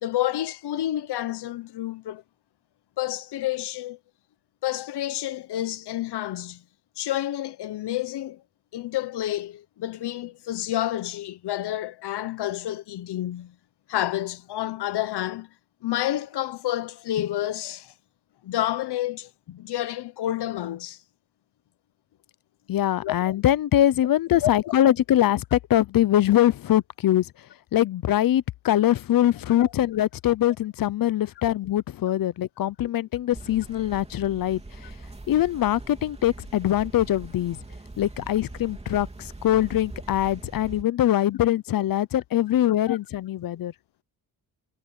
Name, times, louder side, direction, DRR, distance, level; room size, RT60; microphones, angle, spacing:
voice 1, 0.0-2.2 3.0-4.0 4.6-6.6 7.0-8.4 8.7-13.5 13.9-15.5 15.8-17.9 18.4-21.0 23.0-23.4 24.4-24.5 29.6-29.7 32.8-32.9 42.9-43.0, left 13 dB, 85° left, 0.9 m, -29 dB
voice 2, 22.7-27.3 27.7-34.6 35.3-37.6 38.0-39.1 39.4-43.7, left 12 dB, 60° left, 0.7 m, -23 dB
sound 1, 33.3-40.8, right 2 dB, 15° right, 3.1 m, -42 dB
wide cardioid pair, 140°, 39 cm